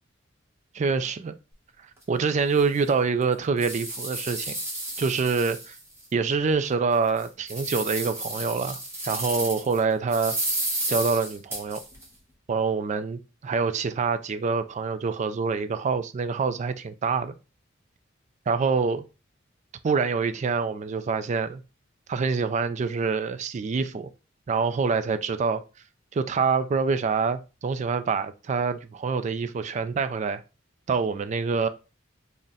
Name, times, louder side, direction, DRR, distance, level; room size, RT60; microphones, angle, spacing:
voice 1, 0.7-1.3 2.1-4.6 5.0-5.8 6.1-8.8 9.0-10.4 10.9-11.8 12.5-17.3 18.5-19.0 19.8-21.6 22.1-24.1 24.5-25.6 26.1-30.4 30.9-31.7, right 5 dB, 35° right, 0.3 m, -26 dB
sound 1, 2.0-2.1 2.6-2.7 3.2-6.0 6.5-6.6 7.1-9.8 10.1-12.0, right 1 dB, 15° right, 1.1 m, -32 dB
3.7 x 2.1 x 3.9 m
head